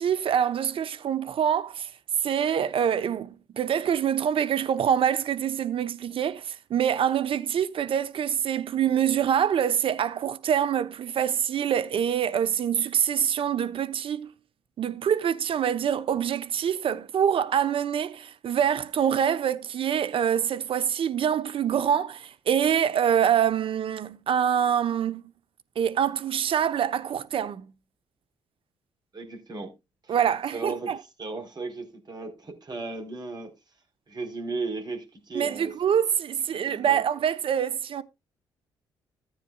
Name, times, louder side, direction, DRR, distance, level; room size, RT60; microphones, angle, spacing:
voice 1, 0.0-1.9 2.2-14.3 14.8-25.2 25.8-27.7 30.1-31.0 35.3-38.0, right 9 dB, 60° right, 1.0 m, -25 dB
voice 2, 29.1-29.7 30.1-30.2 30.5-30.9 31.2-33.5 34.1-35.7 36.5-37.0, right 3 dB, 40° right, 4.2 m, -35 dB
14.5 x 9.3 x 2.4 m
supercardioid pair, 55°, 10 cm